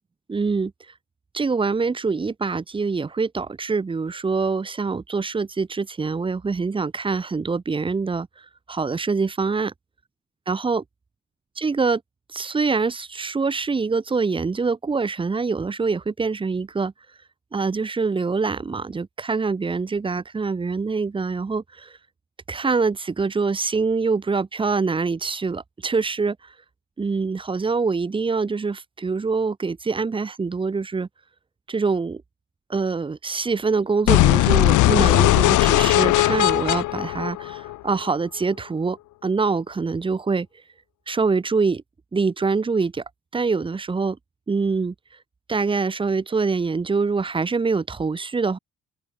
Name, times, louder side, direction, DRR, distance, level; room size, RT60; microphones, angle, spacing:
voice 1, 0.3-0.7 1.3-9.7 10.5-10.8 11.6-12.0 12.3-16.9 17.5-22.0 22.5-26.5 27.0-31.1 31.7-32.2 32.7-40.5 41.1-41.8 42.1-43.0 43.3-44.2 44.5-44.9 45.5-48.6, right 4 dB, 15° right, 0.5 m, -24 dB
sound 1, 34.1-38.0, left 17 dB, 75° left, 0.6 m, -18 dB
open air
cardioid pair, 90°, 30 cm